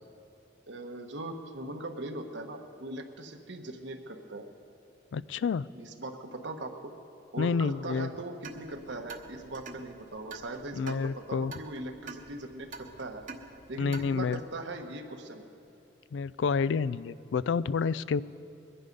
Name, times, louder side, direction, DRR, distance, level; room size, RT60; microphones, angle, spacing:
voice 1, 0.7-4.5 5.7-6.9 7.3-13.2 13.7-15.5, right 2 dB, 75° right, 4 dB, 1.3 m, -40 dB
voice 2, 5.1-5.7 7.4-8.1 10.8-11.5 13.8-14.4 16.1-18.2, left 5 dB, 80° left, 18 dB, 0.3 m, -29 dB
sound 1, 8.4-14.5, right 3 dB, 45° right, 1.1 m, -47 dB
22.0 x 11.5 x 5.4 m, 2.9 s
head